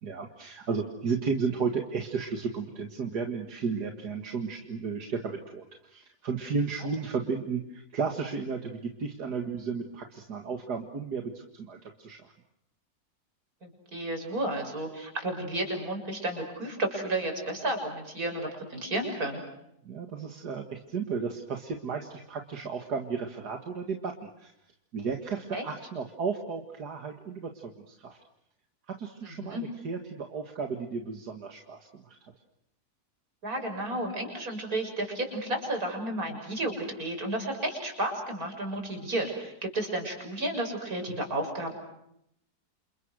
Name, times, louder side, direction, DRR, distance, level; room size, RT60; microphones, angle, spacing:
voice 1, 0.0-12.2 19.8-24.5 24.9-28.2 29.0-32.2, right 5 dB, 90° right, 4 dB, 2.5 m, -34 dB
voice 2, 13.6-19.4 25.5-25.7 29.2-29.7 33.4-41.7, right 1 dB, 65° right, 3 dB, 7.3 m, -32 dB
29.5 x 28.0 x 6.4 m, 0.77 s
omnidirectional pair, 1.7 m